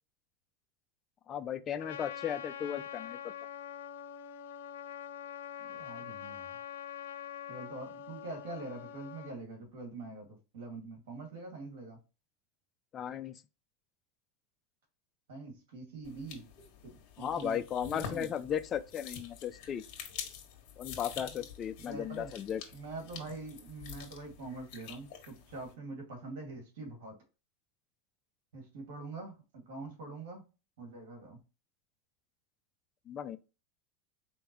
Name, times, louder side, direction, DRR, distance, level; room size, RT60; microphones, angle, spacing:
voice 1, 1.3-3.3 12.9-13.4 17.2-19.8 20.8-22.6 33.1-33.4, left 9 dB, 30° left, 0.4 m, -36 dB
Trumpet, 1.8-9.4, left 9 dB, 90° left, 0.6 m, -44 dB
voice 2, 5.6-6.6 7.5-12.0 15.3-16.5 16.8-17.6 17.9-18.3 21.8-22.3 22.7-27.1 28.5-30.4 30.8-31.4, right 3 dB, 80° right, 2.2 m, -44 dB
sound 1, 16.0-25.7, left 8 dB, 55° left, 1.4 m, -47 dB
4.5 x 3.5 x 3.0 m
supercardioid pair, 135°, 0 cm